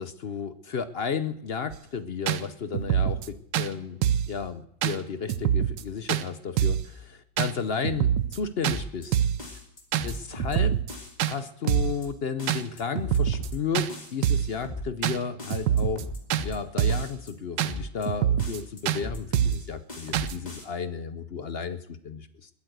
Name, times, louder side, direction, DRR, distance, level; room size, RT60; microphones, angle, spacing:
voice 1, 0.0-9.2 10.0-10.8 11.3-16.1 16.4-22.5, left 6 dB, 55° left, 12 dB, 0.6 m, -33 dB
sound 1, 1.7-1.8 2.3-2.4 2.7-3.3 3.5-3.7 4.0-4.3 4.8-5.0 5.3-5.8 6.1-6.2 6.6-6.9 7.4-7.5 7.8-8.4 8.6-8.8 9.1-9.4 9.9-10.1 10.4-10.9 11.2-11.3 11.7-12.0 12.5-12.6 13.0-13.5 13.7-13.9 14.2-14.5 15.0-15.2 15.5-16.0 16.3-16.5 16.8-17.1 17.6-17.7 18.1-18.6 18.9-19.0 19.3-19.6 20.1-20.3, right 10 dB, 80° right, 1.4 m, -25 dB
sound 2, 8.6-9.1 9.4-10.6 10.9-11.3 11.6-12.1 12.4-13.6 13.9-14.3 14.6-15.1 15.4-16.6 16.9-17.3 17.6-18.1 18.4-19.6 19.9-20.6, left 1 dB, 25° left, 2.6 m, -37 dB
21.0 x 8.6 x 8.0 m, 0.72 s
omnidirectional pair, 1.9 m